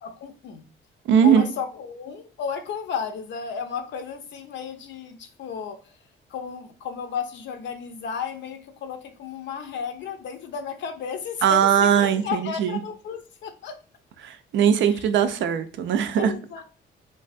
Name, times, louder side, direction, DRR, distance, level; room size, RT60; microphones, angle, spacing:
voice 1, 0.0-0.6 1.2-6.0 6.3-13.8 14.8-15.0 16.1-16.6, left 6 dB, 70° left, 0.5 m, -33 dB
voice 2, 1.1-1.4 11.4-12.8 14.2-16.3, right 8 dB, 70° right, 0.4 m, -20 dB
3.2 x 2.2 x 2.5 m
cardioid pair, 90°, 20 cm